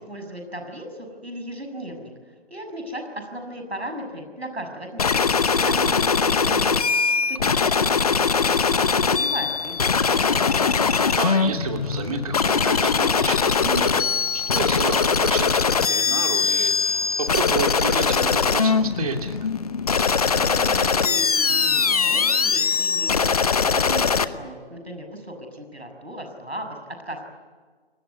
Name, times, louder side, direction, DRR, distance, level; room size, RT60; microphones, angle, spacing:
voice 1, 0.1-2.1 2.5-5.1 5.6-6.9 7.3-10.4 20.3-27.2, right 1 dB, 85° right, 5 dB, 6.7 m, -36 dB
sound 1, 5.0-24.2, left 5 dB, 35° left, 0.9 m, -21 dB
voice 2, 5.6-6.0 10.8-14.0 14.3-19.5, right 5 dB, 35° right, 4 dB, 2.7 m, -31 dB
28.5 x 19.5 x 9.5 m, 1.5 s
figure-of-eight pair, 145°, 31 cm